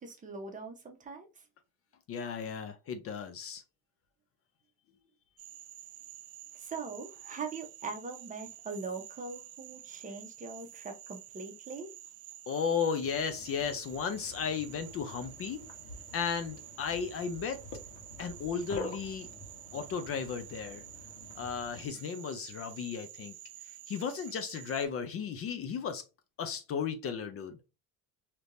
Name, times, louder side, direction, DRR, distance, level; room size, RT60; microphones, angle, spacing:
voice 1, 0.0-1.3 6.5-11.9, right 4 dB, 25° right, 0.8 m, -41 dB
voice 2, 2.1-3.6 12.5-15.6 16.1-17.6 18.2-19.3 19.7-20.8 21.4-23.3 23.9-26.0 26.4-27.6, left 6 dB, 45° left, 0.5 m, -35 dB
Frog, 5.4-24.9, right 13 dB, 50° right, 0.4 m, -50 dB
sound 1, 13.0-21.9, left 2 dB, 85° left, 1.3 m, -48 dB
3.4 x 2.9 x 2.5 m
cardioid pair, 130°, 33 cm